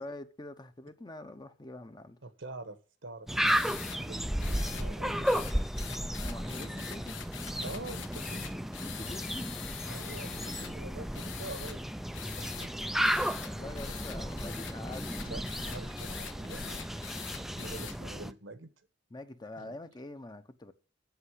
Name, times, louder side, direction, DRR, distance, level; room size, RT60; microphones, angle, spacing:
voice 1, 0.0-2.2 6.2-7.2 8.8-9.5 13.3-15.2 19.1-20.7, left 2 dB, 20° left, 0.8 m, -45 dB
voice 2, 2.2-5.4 6.6-6.8 7.6-8.7 9.8-11.8 12.4-12.9 13.6-14.0 15.2-16.8 17.4-18.7 19.6-19.8, right 2 dB, 75° right, 1.3 m, -46 dB
sound 1, 3.3-18.3, equal, ahead, 0.4 m, -34 dB
sound 2, 3.4-4.0 4.4-4.9 5.2-10.7 11.1-11.8 12.1-12.7 13.0-17.9, left 9 dB, 85° left, 1.2 m, -44 dB
sound 3, 13.4-17.3, left 1 dB, 50° left, 2.2 m, -53 dB
8.1 x 7.0 x 8.2 m
head